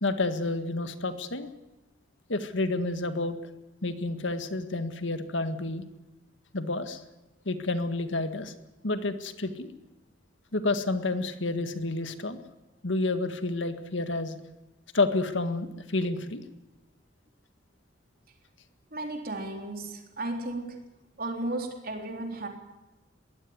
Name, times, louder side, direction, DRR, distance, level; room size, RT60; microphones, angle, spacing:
voice 1, 0.0-1.5 2.3-3.4 3.8-5.8 6.5-7.0 7.5-8.5 8.8-9.7 10.5-12.4 12.8-14.4 14.9-16.4, left 2 dB, 75° left, 9 dB, 1.8 m, -29 dB
voice 2, 18.9-20.8 21.2-22.5, right 2 dB, 50° right, 4 dB, 3.7 m, -34 dB
22.0 x 16.5 x 9.5 m, 1.1 s
head